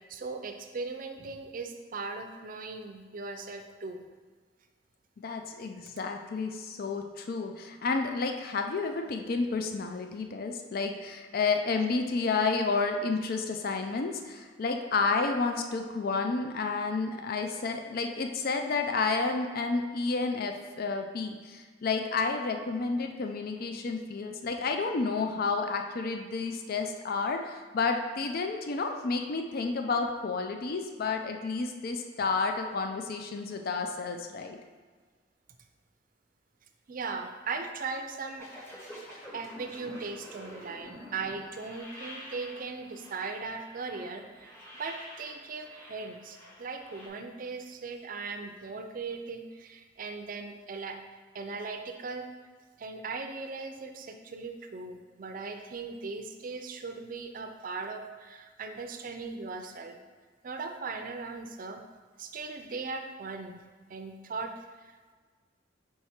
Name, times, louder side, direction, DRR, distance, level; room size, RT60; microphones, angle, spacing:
voice 1, 0.1-4.1 36.9-38.5 39.3-51.0 51.3-52.3 52.8-60.0 60.4-61.8 62.2-63.6 63.9-64.5 64.8-64.9, right 4 dB, 50° right, 6 dB, 0.5 m, -38 dB
voice 2, 5.2-34.6, left 4 dB, 55° left, 5 dB, 0.4 m, -31 dB
sound 1, 38.4-47.1, equal, 15° left, 1.0 m, -47 dB
4.7 x 4.6 x 4.3 m, 1.5 s
head